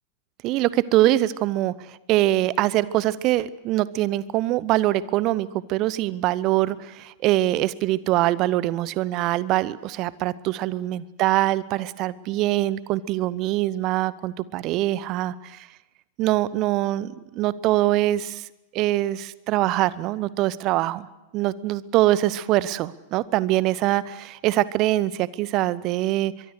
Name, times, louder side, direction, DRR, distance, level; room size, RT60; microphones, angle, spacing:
voice 1, 0.4-15.7 16.2-18.5 18.7-21.1 21.3-26.3, right 15 dB, 40° right, 20 dB, 0.8 m, -23 dB
23.5 x 23.0 x 6.6 m, 1.0 s
figure-of-eight pair, 95°, 0 cm